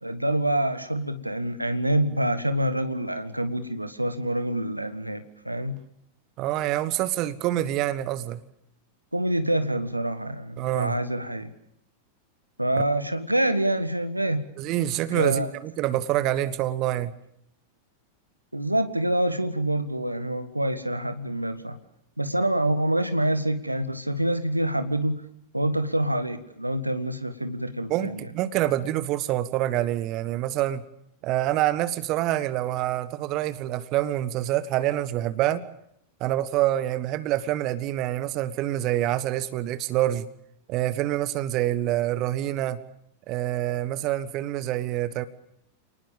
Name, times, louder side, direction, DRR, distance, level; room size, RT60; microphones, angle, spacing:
voice 1, 0.0-5.8 9.1-11.5 12.6-14.4 15.1-15.5 18.5-21.8 22.2-25.2 25.5-28.2, right 1 dB, 85° right, 11 dB, 1.6 m, -26 dB
voice 2, 6.4-8.4 10.6-11.0 14.6-17.1 27.9-30.8 31.2-35.6 36.2-40.3 40.7-42.8 43.3-45.3, right 14 dB, 40° right, 14 dB, 1.3 m, -26 dB
28.5 x 19.5 x 7.2 m, 0.75 s
figure-of-eight pair, 90°, 0 cm